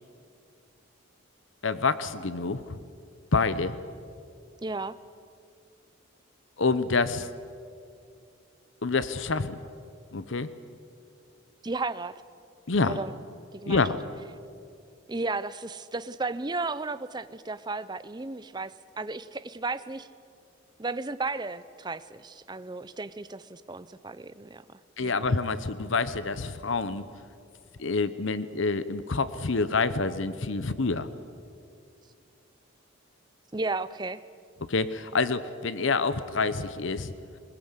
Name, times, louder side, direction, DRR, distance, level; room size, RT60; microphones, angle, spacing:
voice 1, 1.6-2.8 3.3-3.7 6.6-7.3 8.8-9.6 10.1-10.5 12.7-13.0 13.7-14.0 25.0-27.1 27.8-31.1 34.7-37.1, left 4 dB, 65° left, 14 dB, 0.8 m, -27 dB
voice 2, 4.6-5.0 11.6-12.1 12.8-13.1 13.5-13.8 15.1-18.7 19.0-20.1 20.8-24.6 25.0-25.1 33.5-34.2, right 3 dB, 20° right, 14 dB, 0.5 m, -34 dB
21.0 x 21.0 x 8.2 m, 2.4 s
head